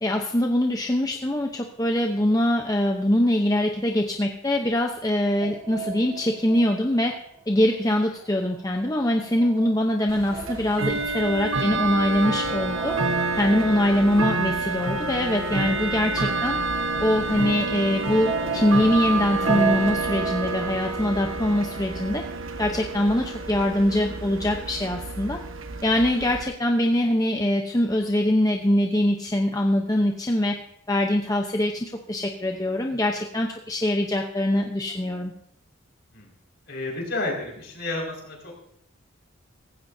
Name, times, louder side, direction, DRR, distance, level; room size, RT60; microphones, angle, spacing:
voice 1, 0.0-7.2 7.5-13.0 13.3-16.6 17.0-22.2 22.6-25.4 25.8-30.6 30.9-35.3, left 1 dB, 15° left, 2 dB, 0.8 m, -23 dB
sound 1, 5.4-8.0 8.2-22.1, right 7 dB, 30° right, 1.4 m, -36 dB
Bell / Tick-tock, 10.1-26.4, right 3 dB, 75° right, 1.3 m, -28 dB
voice 2, 36.7-38.6, left 2 dB, 55° left, -2 dB, 5.4 m, -31 dB
18.0 x 15.5 x 2.7 m, 0.71 s
head